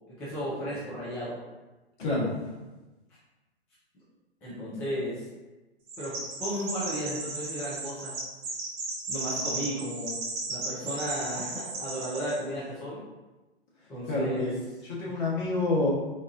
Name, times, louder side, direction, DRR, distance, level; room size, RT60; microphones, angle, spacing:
voice 1, 0.1-1.4 4.4-5.3 6.0-8.1 9.1-10.2 10.5-13.1 13.9-14.5 15.0-15.2, equal, 5° left, -9 dB, 0.3 m, -34 dB
voice 2, 2.0-2.6 14.1-15.9, left 2 dB, 45° left, -5 dB, 1.2 m, -28 dB
Chirp tweet, 5.9-12.4, right 2 dB, 35° right, 0.9 m, -35 dB
4.2 x 2.3 x 2.5 m, 1.1 s
figure-of-eight pair, 120°, 32 cm